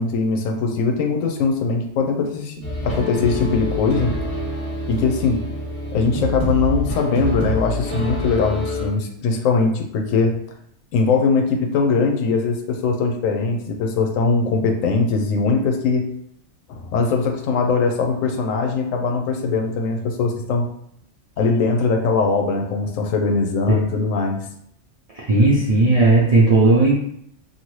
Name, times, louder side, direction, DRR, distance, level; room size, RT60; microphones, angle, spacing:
voice 1, 0.0-2.6 2.8-4.1 4.9-5.4 5.9-10.3 10.9-16.0 16.7-20.7 21.4-24.4, left 4 dB, 85° left, 3 dB, 1.0 m, -21 dB
sound 1, 2.6-8.9, left 1 dB, 20° left, 0.9 m, -26 dB
voice 2, 25.3-26.9, right 2 dB, 55° right, -6 dB, 0.4 m, -15 dB
2.7 x 2.5 x 3.1 m, 0.71 s
omnidirectional pair, 1.3 m